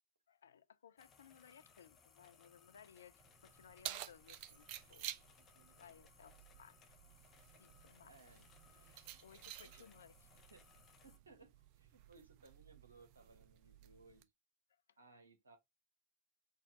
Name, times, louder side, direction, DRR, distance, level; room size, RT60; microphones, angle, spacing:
voice 1, 0.3-5.1 5.8-6.9 7.5-8.5 8.7-10.1, left 8 dB, 65° left, 0.3 m, -62 dB
sound 1, 1.0-11.2, left 6 dB, 25° left, 0.7 m, -67 dB
Keys jangling, 3.2-14.2, right 12 dB, 45° right, 0.4 m, -53 dB
voice 2, 5.4-6.0 8.0-8.5 9.1-9.9 10.5-10.6 11.0-14.2 15.0-15.6, right 3 dB, 70° right, 1.0 m, -64 dB
4.0 x 2.5 x 3.4 m
figure-of-eight pair, 90°, 0 cm